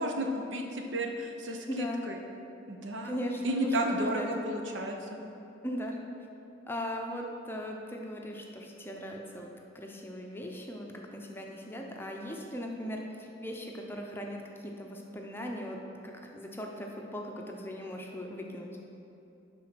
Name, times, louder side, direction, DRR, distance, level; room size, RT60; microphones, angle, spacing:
voice 1, 0.0-2.2 2.7-3.1 3.4-5.2, right 1 dB, 75° right, 2 dB, 0.9 m, -33 dB
voice 2, 1.7-2.0 3.0-4.3 5.6-6.0 6.7-9.5 9.7-18.8, equal, 10° left, 1 dB, 0.6 m, -38 dB
9.8 x 3.8 x 6.1 m, 2.8 s
head